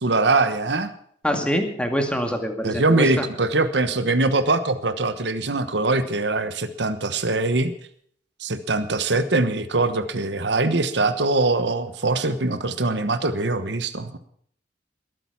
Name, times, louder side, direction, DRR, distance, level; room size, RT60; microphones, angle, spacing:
voice 1, 0.0-0.9 2.6-7.7 8.4-14.2, right 3 dB, 70° right, 11 dB, 1.2 m, -22 dB
voice 2, 1.2-3.2, equal, 5° left, 4 dB, 2.1 m, -25 dB
21.0 x 9.1 x 5.9 m, 0.63 s
head